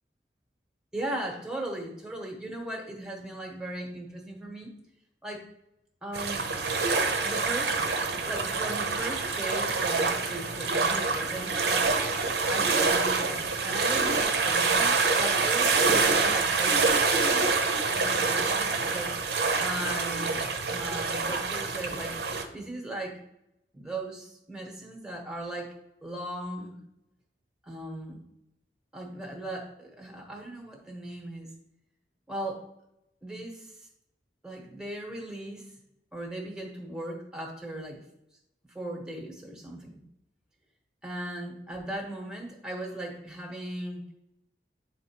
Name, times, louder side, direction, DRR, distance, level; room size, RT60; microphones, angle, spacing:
voice 1, 0.9-4.7 5.2-5.4 6.0-6.5 7.2-7.9 8.3-11.9 12.5-16.9 17.9-19.2 19.6-20.4 20.7-22.2 22.5-23.2 23.7-25.7 26.0-26.8 27.6-28.2 28.9-31.5 32.3-32.7 33.2-33.9 34.4-35.7 36.1-38.0 38.7-40.0 41.0-44.0, right 1 dB, 5° right, 0 dB, 1.1 m, -38 dB
sound 1, 6.1-22.4, right 4 dB, 70° right, 0.7 m, -26 dB
9.3 x 4.0 x 2.9 m, 0.85 s
head